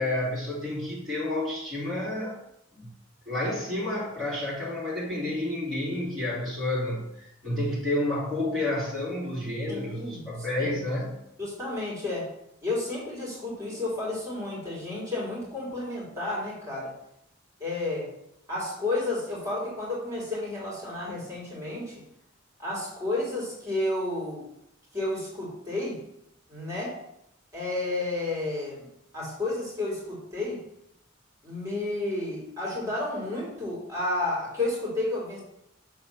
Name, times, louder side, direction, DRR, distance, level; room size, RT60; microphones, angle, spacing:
voice 1, 0.0-2.4 2.8-2.9 3.3-11.2, left 1 dB, ahead, -11 dB, 2.7 m, -30 dB
voice 2, 9.7-10.3 10.6-10.7 11.4-12.3 12.6-16.9 17.6-18.1 18.5-21.9 22.6-24.4 24.9-26.0 26.5-27.0 27.5-28.9 29.1-30.6 31.4-35.4, left 2 dB, 15° right, -6 dB, 2.8 m, -31 dB
6.3 x 4.0 x 5.8 m, 0.77 s
head